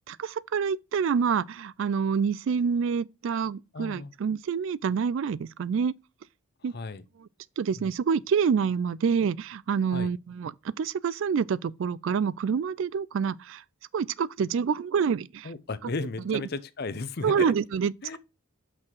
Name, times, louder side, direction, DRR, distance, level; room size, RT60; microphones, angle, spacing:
voice 1, 0.1-5.9 6.6-6.7 7.6-13.6 13.9-15.5 16.3-16.4 17.2-17.9, right 6 dB, 60° right, 0.3 m, -27 dB
voice 2, 3.7-4.1 6.6-7.0 7.8-7.9 9.9-10.1 15.4-17.5 18.0-18.2, left 3 dB, 45° left, 0.6 m, -35 dB
6.0 x 4.8 x 4.5 m
head